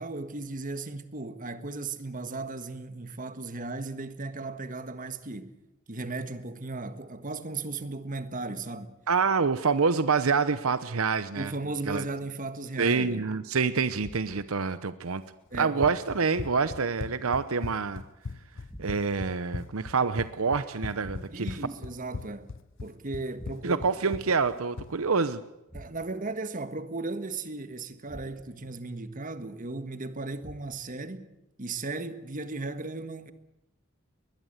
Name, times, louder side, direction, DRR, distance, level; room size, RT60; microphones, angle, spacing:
voice 1, 0.0-5.6 5.9-8.9 11.4-13.2 15.5-15.7 21.3-22.5 22.8-23.8 25.7-31.3 31.6-33.3, right 3 dB, 40° right, 1.5 m, -36 dB
voice 2, 9.1-11.5 11.9-12.1 12.8-15.2 15.5-18.0 18.8-21.6 23.6-25.4, right 5 dB, 75° right, 0.8 m, -27 dB
Run, 15.5-25.0, left 3 dB, 60° left, 0.7 m, -39 dB
sound 1, 18.7-19.3 21.0-21.6 23.3-24.0 25.7-26.3 28.1-28.7 30.4-31.0, equal, 10° left, 2.0 m, -48 dB
21.5 x 20.5 x 8.1 m
head